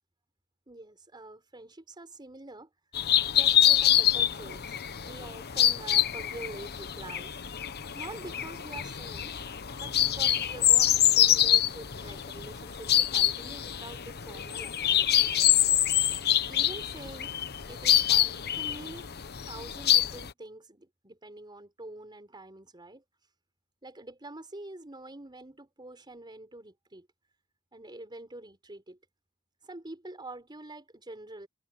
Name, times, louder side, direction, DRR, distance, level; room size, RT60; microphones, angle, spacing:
voice 1, 0.7-2.7 3.3-4.8 5.0-7.4 7.9-9.4 9.7-15.8 16.5-17.3 17.7-19.1 19.5-23.0 23.8-27.1 27.7-29.0 29.6-31.5, right 2 dB, 20° right, 4.2 m, -46 dB
sound 1, 2.9-20.3, left 11 dB, 50° left, 0.9 m, -26 dB
head